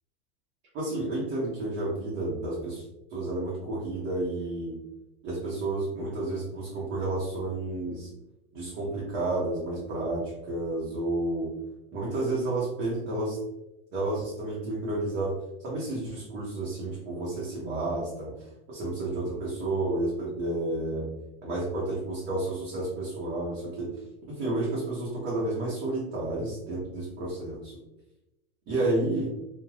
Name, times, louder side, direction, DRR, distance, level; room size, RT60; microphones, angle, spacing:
voice 1, 0.7-2.8 3.1-4.8 5.2-8.1 8.5-11.6 11.9-13.4 13.9-21.1 21.4-24.0 24.3-27.8 28.7-29.4, right 2 dB, 35° right, -6 dB, 0.8 m, -31 dB
3.3 x 2.3 x 2.3 m, 0.94 s
hypercardioid pair, 130°, 32 cm